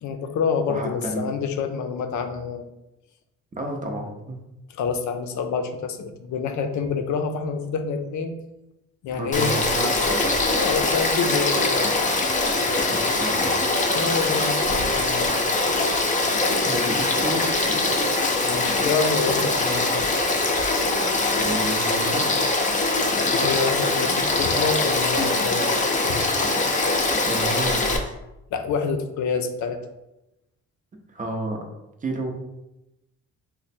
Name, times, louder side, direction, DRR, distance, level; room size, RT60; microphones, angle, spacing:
voice 1, 0.0-2.7 4.7-8.4 9.0-9.6 10.5-12.1 13.9-15.3 18.4-20.1 23.3-25.8 26.0-26.2 28.5-29.8, left 5 dB, 70° left, 6 dB, 0.5 m, -27 dB
voice 2, 0.7-1.3 3.6-4.4 9.1-10.4 12.9-13.5 16.6-17.8 21.4-22.4 27.3-28.1 31.1-31.6 32.0-32.3, right 2 dB, 25° right, 2 dB, 0.7 m, -31 dB
Frog / Stream, 9.3-28.0, left 2 dB, 25° left, 0.5 m, -22 dB
3.1 x 2.1 x 4.2 m, 0.93 s
cardioid pair, 90°, 30 cm